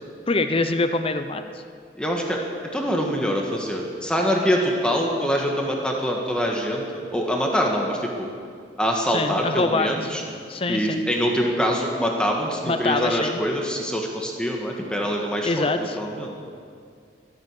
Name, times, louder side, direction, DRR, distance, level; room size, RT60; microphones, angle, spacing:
voice 1, 0.3-1.4 9.1-9.9 10.5-11.0 12.6-13.4 15.4-16.0, left 3 dB, 30° left, 8 dB, 0.7 m, -24 dB
voice 2, 2.0-2.4 2.7-8.3 8.8-10.2 10.7-16.3, equal, 5° left, 0 dB, 1.6 m, -24 dB
13.0 x 12.5 x 8.4 m, 2.2 s
head